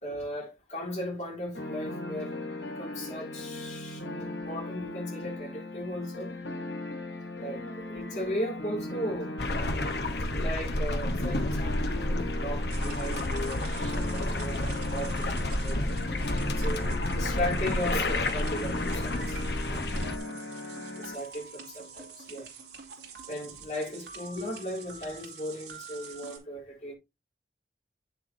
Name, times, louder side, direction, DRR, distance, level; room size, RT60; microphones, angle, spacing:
voice 1, 0.0-2.4 2.7-6.3 7.4-9.3 10.3-15.4 15.6-15.8 16.6-19.4 19.7-19.8 21.0-22.5 23.3-26.9, equal, 40° left, 3.6 m, -37 dB
sound 1, 1.5-21.1, left 2 dB, 90° left, 2.2 m, -38 dB
sound 2, 9.4-20.2, left 1 dB, 70° left, 1.1 m, -30 dB
sound 3, 12.7-26.4, right 4 dB, 75° right, 2.8 m, -46 dB
9.1 x 6.7 x 2.8 m
head